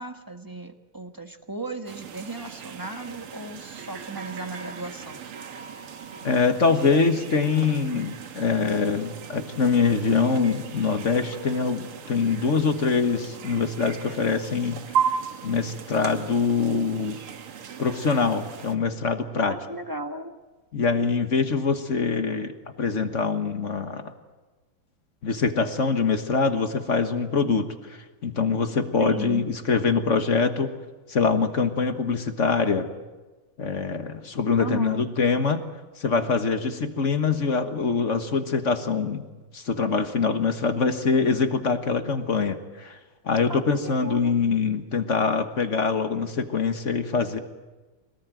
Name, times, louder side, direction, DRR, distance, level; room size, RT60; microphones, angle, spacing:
voice 1, 0.0-5.2 19.4-20.3 29.0-29.4 34.6-35.1 43.5-44.4, right 2 dB, 10° right, 6 dB, 1.2 m, -36 dB
sound 1, 1.9-18.8, right 7 dB, 80° right, 2.3 m, -36 dB
voice 2, 6.2-14.8 15.4-17.2 17.8-19.6 20.7-24.1 25.2-27.7 28.2-30.7 31.1-32.9 33.6-35.6 36.0-39.2 39.5-43.0 43.2-47.4, left 5 dB, 40° left, 8 dB, 1.4 m, -24 dB
25.0 x 19.0 x 9.1 m, 1.2 s
omnidirectional pair, 2.4 m